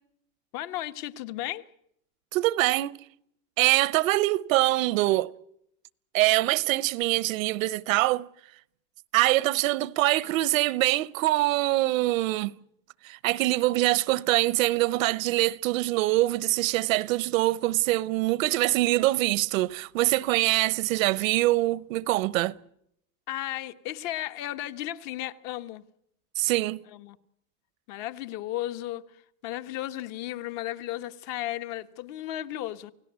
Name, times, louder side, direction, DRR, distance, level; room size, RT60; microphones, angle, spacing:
voice 1, 0.5-1.7 23.3-25.8 26.9-27.2 27.9-32.9, left 14 dB, 45° left, 1.3 m, -34 dB
voice 2, 2.3-3.0 3.6-5.3 6.1-8.3 9.1-12.5 13.0-22.6 26.4-26.8, right 18 dB, 70° right, 1.0 m, -24 dB
29.0 x 17.5 x 8.2 m
supercardioid pair, 160°, 41 cm